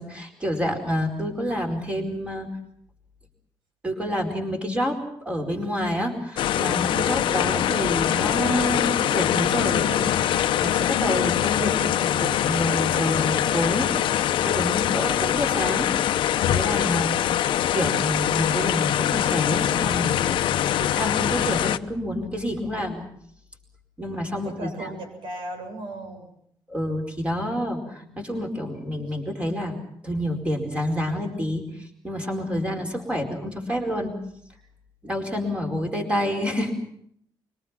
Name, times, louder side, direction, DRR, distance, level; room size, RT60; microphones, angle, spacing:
voice 1, 0.0-2.5 3.8-15.9 16.4-17.2 17.7-20.4 20.8-23.1 24.0-24.9 26.7-29.7 30.0-34.1 35.0-36.7, equal, 15° right, 3 dB, 4.6 m, -28 dB
sound 1, 6.4-21.8, left 11 dB, 70° left, 0.9 m, -23 dB
voice 2, 6.9-7.5 12.1-12.3 14.8-15.3 17.2-17.7 20.4-20.7 22.6-22.8 24.4-26.3 28.0-28.3 29.1-29.2, right 1 dB, 75° right, 5 dB, 7.5 m, -39 dB
25.0 x 24.0 x 5.9 m, 0.68 s
cardioid pair, 180°, 9 cm